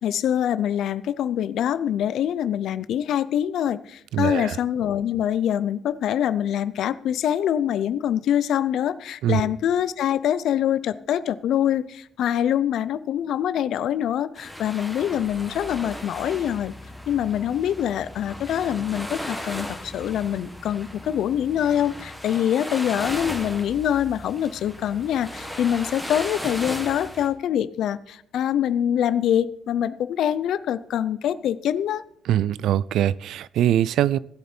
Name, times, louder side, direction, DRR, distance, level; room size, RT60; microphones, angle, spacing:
voice 1, 0.0-16.7 17.1-32.0, left 10 dB, 70° left, 0.6 m, -24 dB
voice 2, 4.1-4.6 9.2-9.5 32.3-34.2, right 11 dB, 80° right, 0.4 m, -22 dB
sound 1, 14.4-27.3, equal, ahead, 1.6 m, -36 dB
15.5 x 8.4 x 4.5 m
cardioid pair, 140°, 0 cm